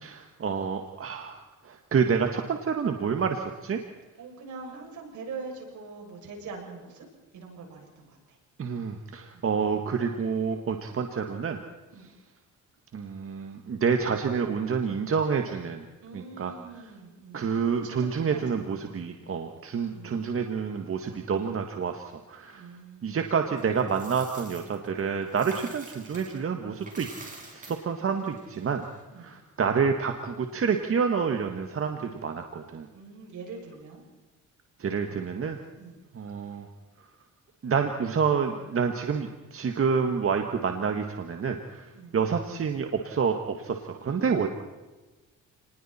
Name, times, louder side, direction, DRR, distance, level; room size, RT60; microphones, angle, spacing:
voice 1, 0.0-3.8 8.6-11.6 12.9-15.9 16.1-16.5 17.3-22.7 23.0-27.1 27.5-28.8 29.2-32.9 34.8-35.6 36.1-36.7 37.6-44.5, right 6 dB, 45° right, 5 dB, 1.8 m, -28 dB
voice 2, 4.2-7.1 7.3-8.4 9.3-9.5 11.9-12.1 16.0-18.9 19.9-20.2 22.5-23.3 25.5-25.8 29.1-29.4 32.9-34.1 35.8-36.0 41.9-42.2 44.0-44.5, right 4 dB, 75° right, 0 dB, 7.2 m, -43 dB
Coin (dropping), 23.6-26.4 26.7-29.0, right 2 dB, 25° right, 6.6 m, -47 dB
30.0 x 20.0 x 4.4 m, 1.2 s
cardioid pair, 90°, 30 cm